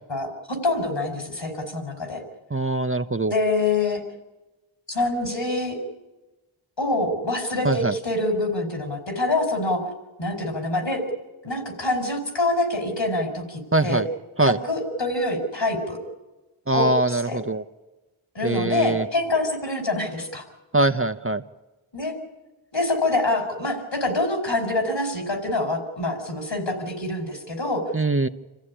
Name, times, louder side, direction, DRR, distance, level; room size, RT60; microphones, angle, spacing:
voice 1, 0.1-2.2 3.3-4.0 4.9-5.8 6.8-9.8 10.2-11.0 11.4-14.0 14.4-16.0 16.7-17.4 18.3-20.5 21.9-22.2 22.7-27.9, left 2 dB, 60° left, 5 dB, 5.4 m, -25 dB
voice 2, 2.5-3.3 7.6-7.9 13.7-14.0 14.4-14.6 16.7-17.6 18.4-19.1 20.7-21.4 27.9-28.3, right 2 dB, 25° right, 10 dB, 0.8 m, -22 dB
27.5 x 15.0 x 10.0 m, 1.1 s
wide cardioid pair, 55°, 48 cm